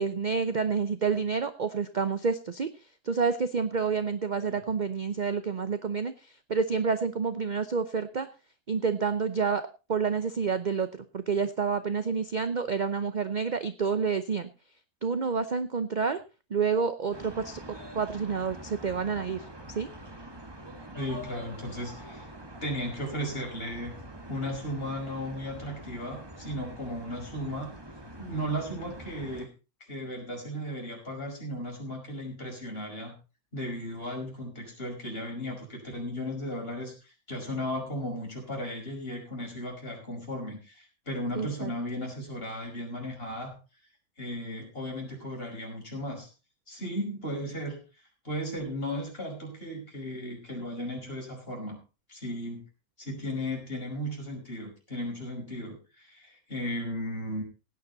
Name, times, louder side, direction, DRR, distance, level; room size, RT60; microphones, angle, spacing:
voice 1, 0.0-2.7 3.0-8.3 8.7-9.6 9.9-10.9 11.1-14.5 15.0-16.2 16.5-17.6 17.9-19.5 19.7-19.9 41.4-41.7, right 5 dB, 40° right, 11 dB, 0.7 m, -28 dB
sound 1, 17.1-29.5, right 1 dB, 15° right, 1.5 m, -45 dB
voice 2, 21.0-22.3 22.6-23.9 24.3-27.7 28.2-29.5 29.9-33.1 33.5-43.6 44.2-46.3 46.7-47.8 48.2-51.8 52.1-52.6 53.0-57.4, equal, 40° left, 0 dB, 5.6 m, -35 dB
17.0 x 9.6 x 4.0 m, 0.31 s
omnidirectional pair, 1.6 m